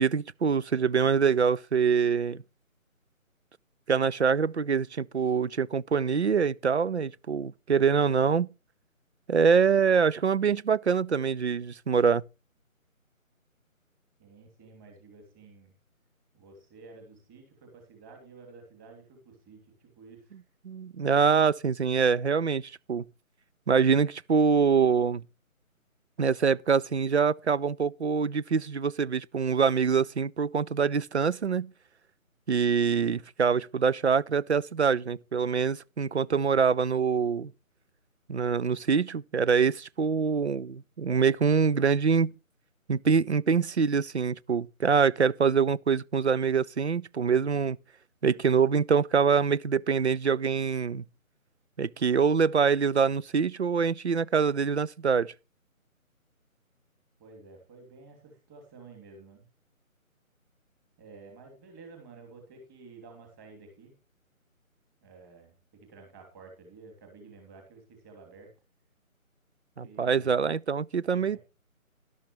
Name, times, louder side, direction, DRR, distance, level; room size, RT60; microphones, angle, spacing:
voice 1, 0.0-2.4 3.9-8.5 9.3-12.2 20.6-23.0 23.7-25.2 26.2-31.7 32.5-37.5 38.3-42.3 42.9-47.8 48.2-51.0 51.8-55.3 69.8-71.4, right 6 dB, 55° right, 0.5 m, -25 dB
voice 2, 14.2-15.7 16.3-20.4 57.2-59.5 61.0-63.9 65.0-68.5 69.8-70.3 71.1-71.4, right 4 dB, 15° right, 2.9 m, -51 dB
13.0 x 12.0 x 3.1 m
figure-of-eight pair, 160°, 42 cm